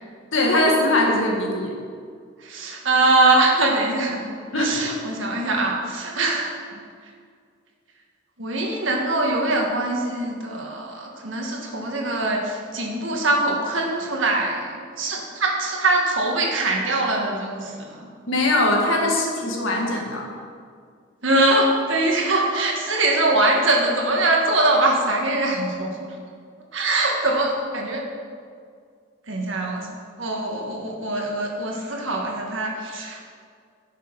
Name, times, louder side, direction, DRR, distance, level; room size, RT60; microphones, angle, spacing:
voice 1, 0.3-1.7 4.5-4.9 18.3-20.3, left 1 dB, 80° left, 0 dB, 1.8 m, -21 dB
voice 2, 2.4-4.2 4.6-6.5 8.4-14.7 15.0-18.1 21.2-26.1 26.7-28.0 29.3-29.9 30.2-33.3, right 2 dB, 80° right, 0 dB, 1.6 m, -22 dB
10.0 x 6.6 x 5.3 m, 2.1 s
head